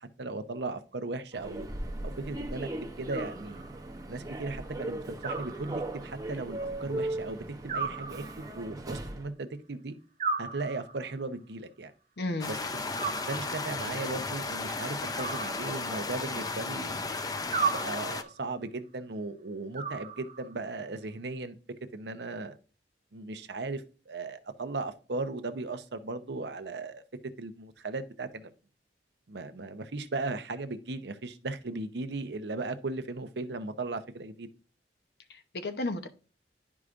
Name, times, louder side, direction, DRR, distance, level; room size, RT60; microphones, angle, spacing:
voice 1, 0.0-1.7 2.0-2.7 3.0-3.6 4.1-9.9 10.4-11.9 12.5-12.8 13.3-17.0 17.7-21.6 21.9-22.6 23.1-27.0 27.4-28.5 29.3-34.5, right 3 dB, 70° right, 0.8 m, -37 dB
Human voice / Subway metro underground, 1.3-9.3, right 1 dB, 20° right, 0.7 m, -38 dB
Animal, 3.1-4.0 5.2-6.2 7.7-8.8 10.2-11.2 12.9-13.8 15.1-16.2 17.5-18.4 19.7-20.7, right 5 dB, 40° right, 1.0 m, -36 dB
voice 2, 12.2-12.5 35.3-36.1, left 2 dB, 65° left, 0.8 m, -33 dB
sound 1, 12.4-18.2, left 3 dB, 20° left, 0.5 m, -34 dB
11.0 x 4.8 x 2.5 m
head